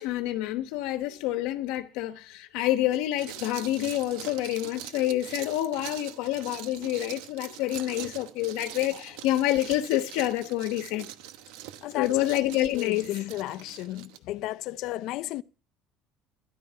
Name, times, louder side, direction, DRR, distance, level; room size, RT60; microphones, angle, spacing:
voice 1, 0.0-11.1 11.9-13.1, left 14 dB, 85° left, 1.1 m, -28 dB
sound 1, 2.9-14.2, right 13 dB, 85° right, 1.1 m, -43 dB
voice 2, 11.8-15.4, left 15 dB, 65° left, 0.6 m, -34 dB
13.5 x 11.5 x 5.7 m
cardioid pair, 125°, 0 cm